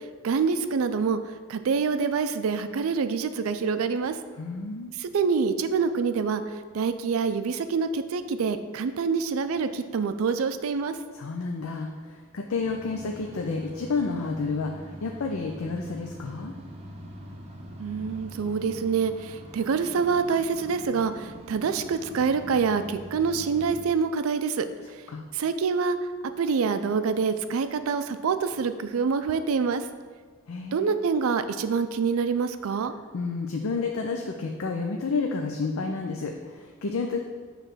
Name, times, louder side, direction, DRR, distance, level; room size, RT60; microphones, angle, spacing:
voice 1, 0.2-1.2 1.5-4.2 5.0-6.4 6.7-10.9 17.8-24.7 25.3-26.0 26.4-29.8 30.7-32.9, right 5 dB, 75° right, 10 dB, 0.4 m, -26 dB
voice 2, 4.4-4.9 11.1-16.5 25.1-25.2 30.5-31.0 33.1-37.2, left 4 dB, 75° left, 3 dB, 0.5 m, -30 dB
sound 1, 12.6-23.8, equal, 30° right, 1.0 m, -43 dB
6.8 x 3.2 x 6.1 m, 1.5 s
head